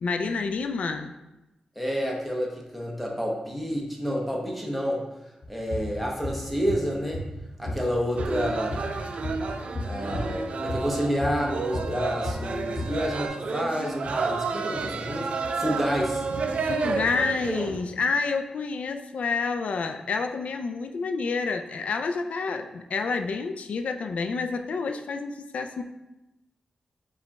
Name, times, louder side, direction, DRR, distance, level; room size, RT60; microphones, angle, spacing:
voice 1, 0.0-1.1 16.6-25.8, left 4 dB, 75° left, 7 dB, 0.3 m, -29 dB
voice 2, 1.8-5.0 5.5-7.2 7.6-9.0 9.8-16.2, equal, ahead, -2 dB, 0.8 m, -29 dB
sound 1, 5.4-7.4 7.7-11.5 11.7-13.1, left 1 dB, 35° left, 0.8 m, -33 dB
sound 2, 8.2-17.9, right 4 dB, 65° right, 0.3 m, -31 dB
5.0 x 2.3 x 4.0 m, 0.97 s
wide cardioid pair, 105°, 2 cm